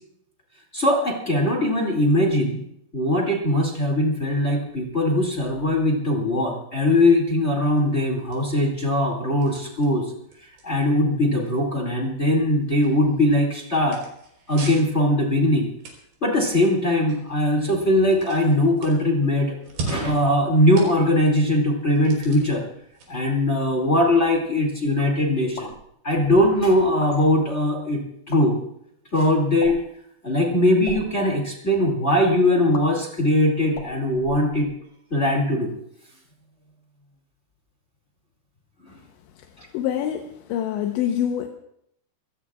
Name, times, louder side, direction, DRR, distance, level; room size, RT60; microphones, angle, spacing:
voice 1, 0.7-2.6 2.9-10.1 10.4-14.0 14.5-15.7 16.2-19.5 19.8-22.6 23.1-25.7 26.0-28.6 29.1-29.8 30.2-34.7 35.1-35.7 39.6-39.7, left 1 dB, 25° left, -1 dB, 1.4 m, -21 dB
sound 1, 7.4-24.4, right 3 dB, 65° right, 6.4 m, -42 dB
sound 2, 25.5-25.9 26.8-27.2 28.2-28.4 29.6-29.9 30.7-31.0 32.7-32.8 33.7-34.9, left 2 dB, 45° left, 2.8 m, -38 dB
voice 2, 39.7-41.5, left 10 dB, 80° left, 3 dB, 3.1 m, -25 dB
26.5 x 17.0 x 2.4 m, 0.73 s
omnidirectional pair, 5.4 m